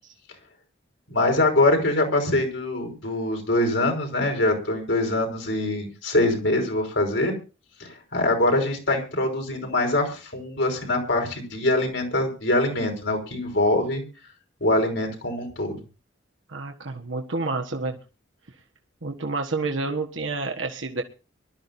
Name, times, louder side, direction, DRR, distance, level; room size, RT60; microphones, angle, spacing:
voice 1, 1.1-7.3 7.8-14.0 14.6-15.8, left 2 dB, 70° left, 3 dB, 5.4 m, -23 dB
voice 2, 16.5-18.0 19.0-21.0, right 3 dB, 80° right, 3 dB, 1.5 m, -29 dB
23.5 x 13.0 x 2.7 m, 0.34 s
head